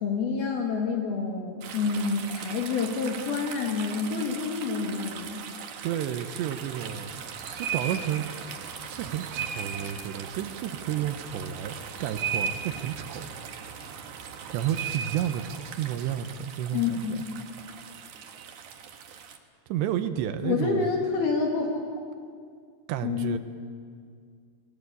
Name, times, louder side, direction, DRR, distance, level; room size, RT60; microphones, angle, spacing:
voice 1, 0.0-5.4 16.7-17.2 20.4-21.8 23.0-23.4, left 5 dB, 65° left, 0 dB, 3.7 m, -28 dB
sound 1, 1.6-19.4, right 7 dB, 60° right, 2.4 m, -38 dB
voice 2, 5.8-7.2 7.6-8.2 8.8-13.3 14.5-17.2 19.7-20.9 22.9-23.4, right 10 dB, 90° right, 9 dB, 3.2 m, -31 dB
30.0 x 21.0 x 8.3 m, 2.1 s
omnidirectional pair, 5.0 m